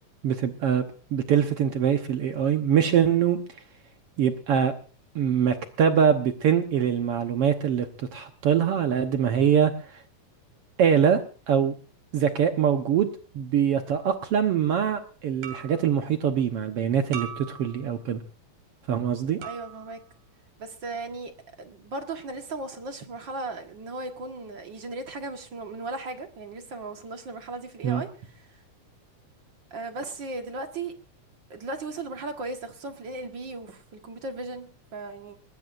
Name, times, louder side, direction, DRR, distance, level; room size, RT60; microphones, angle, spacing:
voice 1, 0.2-0.8 1.1-3.4 4.2-4.7 5.1-9.7 10.8-11.2 11.5-11.7 12.1-13.1 13.3-18.2 18.9-19.4 27.8-28.0, right 8 dB, 65° right, 6 dB, 1.6 m, -23 dB
sound 1, 14.0-14.3 15.4-16.0 17.1-18.0 19.4-20.1, right 8 dB, 90° right, 4.5 m, -40 dB
voice 2, 19.4-20.0 20.6-21.3 21.6-28.1 29.7-30.9 31.5-35.4, right 2 dB, 45° right, 5 dB, 1.7 m, -36 dB
20.5 x 19.5 x 2.5 m, 0.38 s
omnidirectional pair, 3.6 m